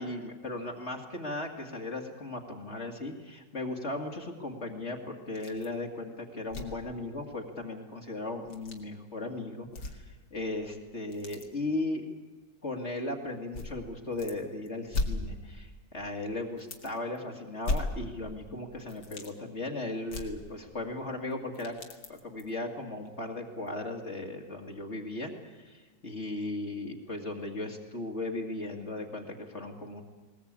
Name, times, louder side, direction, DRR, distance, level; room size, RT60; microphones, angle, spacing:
voice 1, 0.0-12.1 12.6-21.8 22.1-30.0, left 2 dB, 40° left, 1 dB, 2.2 m, -37 dB
sound 1, 5.3-5.8 6.1-6.2 6.5-6.9 8.4-8.8 9.6-10.3 10.6-11.5 12.4-12.5 13.5-14.4 14.7-15.8 16.1-16.2 16.6-17.2 17.6-18.5 18.8-19.3 20.1-21.0 21.3-22.5 23.1-23.2 23.7-23.8, left 2 dB, 70° left, 2.8 m, -37 dB
20.5 x 19.5 x 8.7 m, 1.3 s
omnidirectional pair, 1.9 m